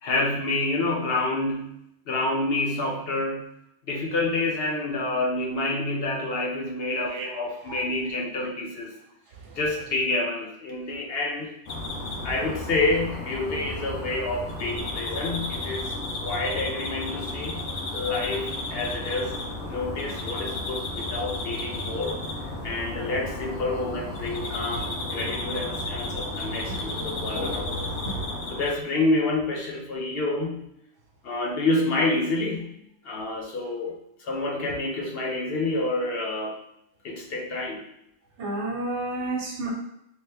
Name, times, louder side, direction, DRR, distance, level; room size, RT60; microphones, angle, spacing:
voice 1, 0.0-1.7 2.1-3.5 3.9-8.9 9.5-11.5 12.2-15.9 16.2-17.6 17.9-19.4 19.6-22.2 22.6-27.9 28.5-30.7 31.2-32.7 33.0-36.6 37.0-37.9, left 2 dB, 60° left, -1 dB, 0.8 m, -28 dB
sound 1, 11.7-28.7, left 2 dB, 85° left, 1.0 m, -33 dB
voice 2, 38.4-39.7, right 2 dB, 80° right, 0 dB, 1.1 m, -31 dB
3.0 x 2.8 x 3.3 m, 0.79 s
omnidirectional pair, 1.2 m